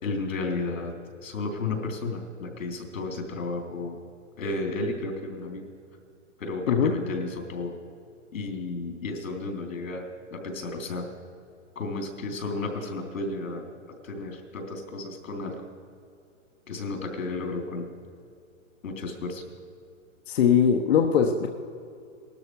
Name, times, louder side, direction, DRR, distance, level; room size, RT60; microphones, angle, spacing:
voice 1, 0.0-0.9 1.2-4.0 4.4-5.6 6.4-7.8 8.3-11.1 11.8-15.7 16.7-17.9 18.8-19.4, left 3 dB, 90° left, 3 dB, 3.4 m, -33 dB
voice 2, 20.3-21.5, left 7 dB, 55° left, 3 dB, 1.1 m, -21 dB
19.0 x 13.0 x 4.7 m, 2.4 s
hypercardioid pair, 165°, 39 cm